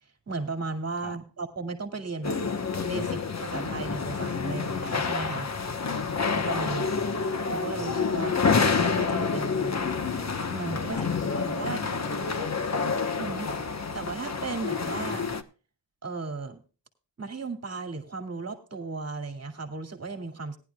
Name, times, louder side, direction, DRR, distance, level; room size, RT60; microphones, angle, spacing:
voice 1, 0.3-2.4 2.8-5.5 6.4-6.9 7.5-9.7 10.5-11.0 11.4-11.9 13.2-13.5 13.9-15.3 16.0-16.6 17.2-20.6, right 3 dB, 35° right, 6 dB, 2.4 m, -35 dB
sound 1, 2.2-15.4, left 5 dB, 40° left, 1.2 m, -28 dB
voice 2, 5.8-6.2 6.6-6.8 10.9-11.1 11.6-12.6, left 6 dB, 85° left, 9 dB, 1.5 m, -41 dB
18.5 x 11.0 x 2.3 m, 0.35 s
wide cardioid pair, 140°, 43 cm